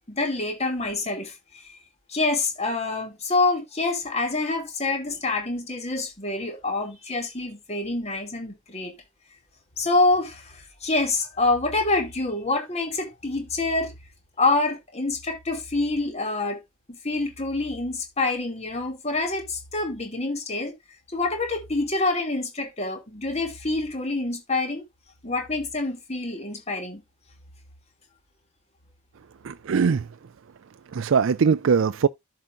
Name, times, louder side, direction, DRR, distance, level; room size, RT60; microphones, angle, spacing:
voice 1, 0.1-1.8 2.1-8.9 9.8-13.9 14.4-16.6 17.0-20.7 21.1-24.8 25.2-27.0, left 2 dB, 30° left, 2.6 m, -26 dB
voice 2, 29.4-30.0 30.9-32.1, right 6 dB, 70° right, 0.4 m, -21 dB
13.5 x 5.7 x 2.5 m
head